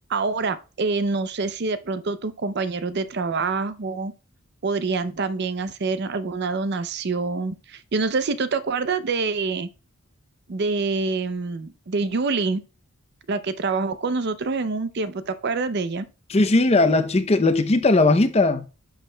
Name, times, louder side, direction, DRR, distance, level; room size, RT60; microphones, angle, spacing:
voice 1, 0.1-4.1 4.6-9.7 10.5-12.6 13.3-16.1, right 4 dB, 50° right, 0.5 m, -26 dB
voice 2, 16.3-18.6, left 2 dB, 30° left, 0.6 m, -18 dB
11.5 x 6.3 x 2.2 m
head